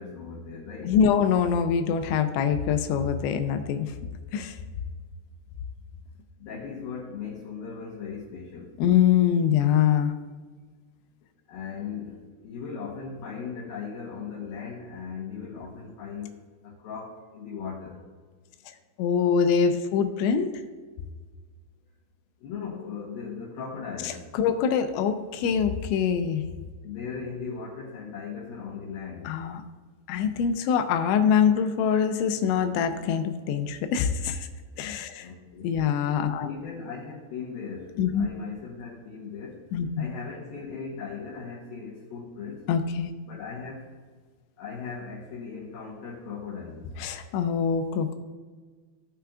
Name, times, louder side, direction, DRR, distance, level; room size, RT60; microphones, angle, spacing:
voice 1, 0.0-1.0 6.4-8.8 11.5-16.3 16.6-18.0 22.4-24.3 26.8-29.4 35.2-35.7 36.4-39.7 40.0-42.7 43.2-43.9 44.6-46.9, left 5 dB, 70° left, -6 dB, 2.5 m, -38 dB
voice 2, 0.8-3.9 4.3-4.6 8.8-10.1 19.0-20.5 24.4-26.4 29.3-29.6 30.1-34.5 34.8-35.3 35.6-36.5 38.0-38.3 39.7-39.9 42.7-43.1 47.0-48.2, left 7 dB, 85° left, 7 dB, 2.9 m, -24 dB
16.5 x 5.8 x 2.4 m, 1.5 s
omnidirectional pair, 5.3 m